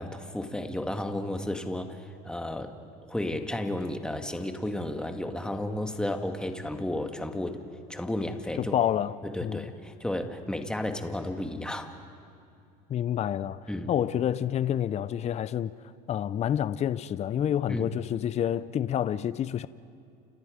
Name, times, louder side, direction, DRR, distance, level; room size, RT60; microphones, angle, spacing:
voice 1, 0.0-2.7 3.1-7.6 7.9-8.7 9.2-11.9 13.7-13.9 17.7-17.9, left 1 dB, 5° left, 1.8 m, -33 dB
voice 2, 8.6-9.1 9.4-9.7 12.9-15.7 16.1-19.7, left 10 dB, 35° left, 0.6 m, -28 dB
30.0 x 28.5 x 5.1 m
supercardioid pair, 105°, 19 cm